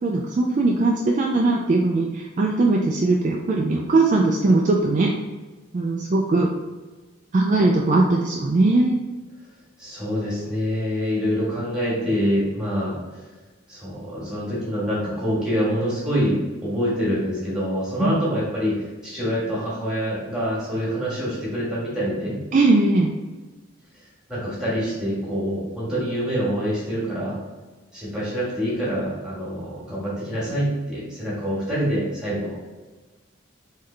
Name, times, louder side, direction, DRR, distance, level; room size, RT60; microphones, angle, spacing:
voice 1, 0.0-5.1 5.7-6.5 7.3-9.0 18.0-18.2 22.5-23.1, right 2 dB, 40° right, -1 dB, 0.3 m, -20 dB
voice 2, 9.8-13.2 13.7-22.4 24.3-27.4 27.9-32.6, equal, 5° right, -8 dB, 1.5 m, -26 dB
3.8 x 3.2 x 3.2 m, 1.3 s
head